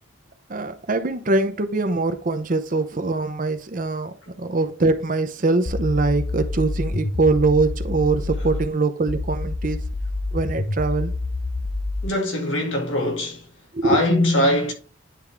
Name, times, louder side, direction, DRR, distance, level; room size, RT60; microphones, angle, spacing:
voice 1, 0.5-9.8 10.3-11.1 13.7-14.0, right 3 dB, 45° right, 0.7 m, -23 dB
sound 1, 5.7-8.7 9.1-12.1, left 2 dB, 40° left, 0.6 m, -27 dB
voice 2, 12.0-13.5 13.8-14.7, left 1 dB, 75° left, 2.0 m, -21 dB
10.0 x 3.6 x 3.3 m
head